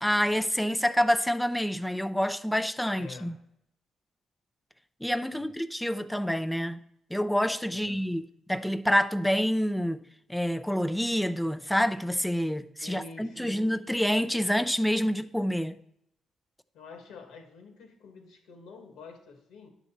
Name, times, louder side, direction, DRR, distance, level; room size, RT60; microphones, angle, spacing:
voice 1, 0.0-3.4 5.0-6.8 7.1-10.0 10.3-15.7, equal, 5° left, 0.5 m, -27 dB
voice 2, 3.0-3.3 5.3-5.5 7.7-8.0 12.8-13.7 16.7-19.7, left 4 dB, 85° left, 1.9 m, -47 dB
10.5 x 4.1 x 7.3 m
cardioid pair, 90°, 0 cm